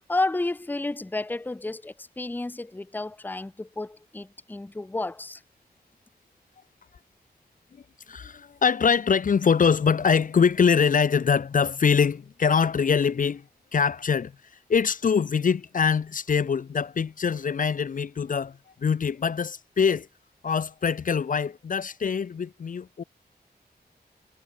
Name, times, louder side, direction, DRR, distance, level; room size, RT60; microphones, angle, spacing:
voice 1, 0.1-5.4, left 2 dB, 10° left, 0.6 m, -31 dB
voice 2, 7.7-13.5 13.7-14.3 14.7-20.1 20.4-23.0, left 6 dB, 55° left, 0.6 m, -23 dB
wide cardioid pair, 120°, 17 cm